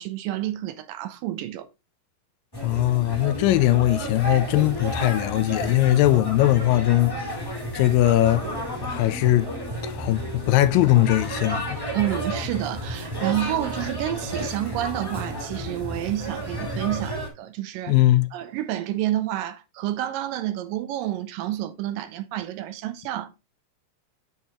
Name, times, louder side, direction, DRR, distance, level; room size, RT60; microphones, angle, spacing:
voice 1, 0.0-1.7 11.9-18.0 18.3-23.3, right 13 dB, 80° right, 2.2 m, -29 dB
sound 1, 2.5-17.3, equal, 10° left, 1.8 m, -32 dB
voice 2, 2.6-7.4 7.7-8.5 8.8-9.5 9.8-11.8 17.9-18.3, left 15 dB, 85° left, 2.3 m, -20 dB
7.3 x 6.5 x 2.9 m
omnidirectional pair, 4.0 m